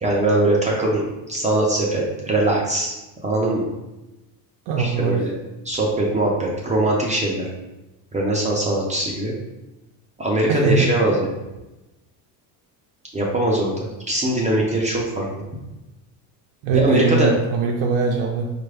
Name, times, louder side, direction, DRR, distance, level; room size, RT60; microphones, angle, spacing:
voice 1, 0.0-3.0 3.2-3.7 4.8-5.3 5.6-7.5 8.1-9.3 10.2-11.3 13.1-15.3 16.7-17.3, right 1 dB, 20° right, -3 dB, 0.5 m, -21 dB
voice 2, 4.7-5.2 10.5-10.9 16.6-18.5, right 5 dB, 90° right, -1 dB, 0.6 m, -21 dB
4.5 x 2.4 x 3.3 m, 1.0 s
cardioid pair, 135°, 41 cm